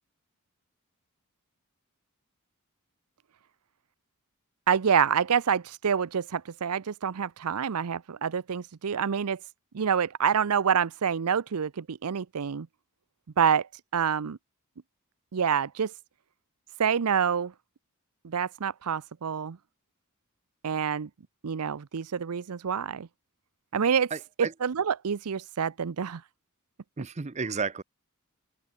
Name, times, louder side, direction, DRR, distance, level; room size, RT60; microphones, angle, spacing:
voice 1, 4.7-9.4 9.7-12.7 13.4-13.7 13.9-14.4 15.3-15.9 16.8-17.5 18.2-19.6 20.6-21.1 21.4-23.1 23.7-24.1 24.4-26.2, right 7 dB, 90° right, 0.6 m, -27 dB
voice 2, 24.1-24.5 27.0-27.8, right 5 dB, 30° right, 0.6 m, -32 dB
head